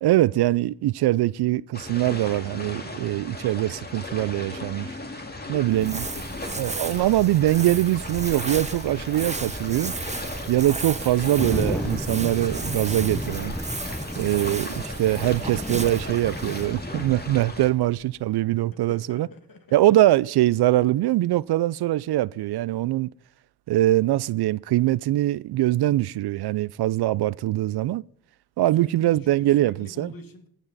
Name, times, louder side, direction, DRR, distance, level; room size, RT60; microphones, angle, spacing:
voice 1, 0.0-4.9 5.5-6.1 6.6-9.9 10.5-13.5 14.2-19.3 19.7-23.1 23.7-28.0 28.6-30.1, right 15 dB, 70° right, 0.5 m, -23 dB
sound 1, 1.7-17.7, left 2 dB, 25° left, 2.3 m, -37 dB
voice 2, 5.2-6.5 18.7-19.8 28.7-30.5, left 3 dB, 55° left, 2.2 m, -46 dB
Crumpling crinkling, 5.7-18.1, right 3 dB, 15° right, 1.0 m, -35 dB
sound 2, 7.0-7.1 7.6-7.7 9.2-17.4, left 1 dB, 5° left, 0.4 m, -34 dB
18.0 x 7.3 x 4.0 m
cardioid pair, 60°, 41 cm